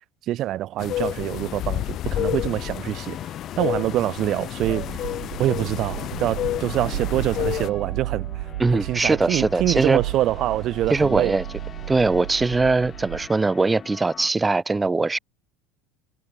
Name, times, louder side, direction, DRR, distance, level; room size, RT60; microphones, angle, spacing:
voice 1, 0.3-3.2 3.6-5.1 5.4-8.3 8.7-11.4, right 13 dB, 50° right, 0.6 m, -25 dB
sound 1, 0.8-7.7, left 13 dB, 50° left, 1.6 m, -30 dB
sound 2, 2.0-14.3, left 7 dB, 35° left, 1.9 m, -43 dB
sound 3, 4.6-13.3, right 17 dB, 75° right, 0.9 m, -33 dB
voice 2, 8.6-10.0 10.9-11.4 11.9-15.2, right 3 dB, 15° right, 1.5 m, -21 dB
hypercardioid pair, 80°, 0 cm